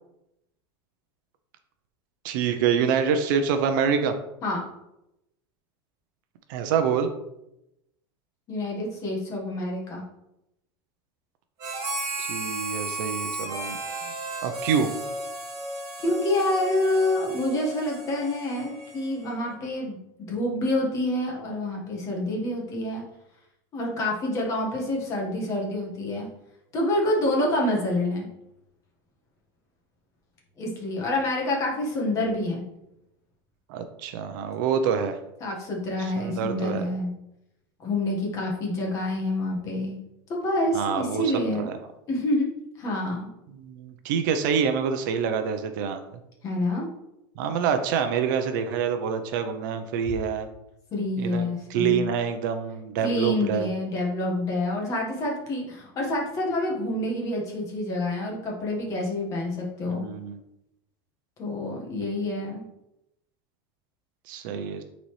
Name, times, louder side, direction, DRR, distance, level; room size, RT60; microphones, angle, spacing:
voice 1, 2.2-4.1 6.5-7.1 12.2-13.8 14.4-14.9 33.7-35.2 36.0-36.9 40.7-41.2 41.5-41.7 43.6-46.0 47.4-50.5 51.2-53.7 59.9-60.4 64.3-64.8, right 7 dB, 55° right, 7 dB, 0.7 m, -26 dB
voice 2, 8.5-10.0 16.0-20.0 20.3-23.0 23.7-26.3 26.7-28.3 30.6-32.6 35.4-37.1 37.8-40.0 40.3-41.7 42.1-42.5 42.8-43.3 46.4-46.9 50.9-52.1 53.0-60.0 61.4-62.6, left 1 dB, 25° left, -1 dB, 1.5 m, -27 dB
Harmonica, 11.6-19.3, right 2 dB, 25° right, 2.3 m, -34 dB
9.0 x 4.1 x 3.3 m, 0.86 s
supercardioid pair, 175°, 13 cm